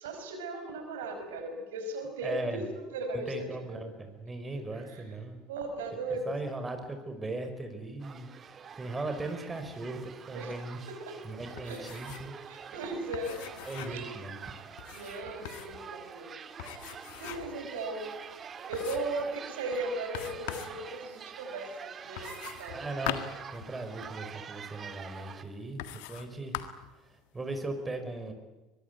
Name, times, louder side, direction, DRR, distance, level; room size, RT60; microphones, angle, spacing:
voice 1, 0.0-3.8 4.7-5.0 5.5-6.2 10.3-10.6 10.9-11.2 11.6-11.8 12.5-13.4 13.9-14.1 14.9-16.4 16.7-22.9, right 2 dB, 75° right, 5 dB, 5.4 m, -37 dB
voice 2, 2.2-2.7 3.1-5.4 6.3-10.8 11.2-12.3 13.7-14.4 22.7-23.2 23.5-26.6 27.0-28.3, right 2 dB, 20° right, 6 dB, 4.9 m, -38 dB
sound 1, 8.0-25.4, right 7 dB, 35° right, 1.9 m, -46 dB
sound 2, 11.6-12.4 12.6-12.7 13.1-14.1 14.8-15.8 16.6-17.6 18.1-18.2 18.7-19.2 20.1-20.8 22.2-24.2 25.0-25.1 25.8-26.3 26.5-26.9, left 13 dB, 65° left, 1.7 m, -41 dB
24.0 x 22.0 x 9.4 m, 1.1 s
hypercardioid pair, 70°, 0 cm